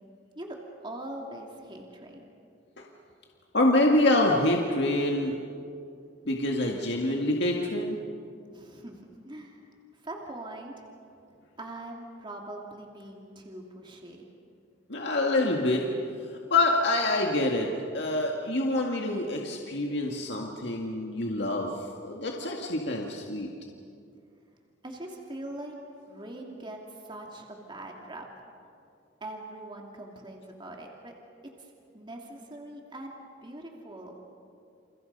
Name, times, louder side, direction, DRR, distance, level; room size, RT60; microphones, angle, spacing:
voice 1, 0.8-2.2 8.5-9.6 10.0-10.7 11.6-14.3 24.8-25.7 26.1-28.3 29.2-31.1 31.6-33.1 33.4-34.1, right 1 dB, 25° right, 0 dB, 2.8 m, -42 dB
voice 2, 3.5-5.4 6.3-8.0 14.9-15.8 16.5-17.7 17.9-21.7 22.0-23.5, left 2 dB, 65° left, 0 dB, 2.0 m, -26 dB
29.5 x 29.0 x 5.5 m, 2.5 s
head